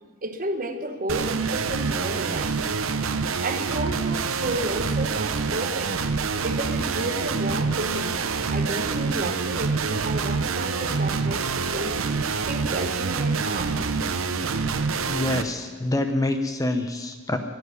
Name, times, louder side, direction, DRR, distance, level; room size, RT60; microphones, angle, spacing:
voice 1, 0.2-2.5 3.2-8.2 8.5-13.8, right 1 dB, 40° right, 8 dB, 0.9 m, -32 dB
sound 1, 1.1-15.4, right 4 dB, 80° right, 0.8 m, -26 dB
voice 2, 15.1-17.4, left 2 dB, 15° left, 7 dB, 0.7 m, -26 dB
10.5 x 10.5 x 9.5 m, 1.5 s
head